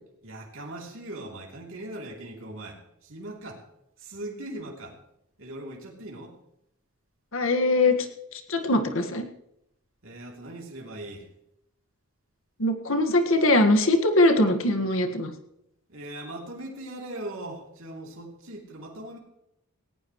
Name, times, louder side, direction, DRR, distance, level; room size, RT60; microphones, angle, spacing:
voice 1, 0.2-3.6 4.0-5.0 5.4-6.4 10.0-11.3 15.9-19.2, right 1 dB, 65° right, -1 dB, 3.2 m, -40 dB
voice 2, 7.3-8.1 8.3-9.3 12.6-15.3, left 2 dB, 65° left, 5 dB, 1.8 m, -22 dB
18.0 x 18.0 x 3.2 m, 0.80 s
head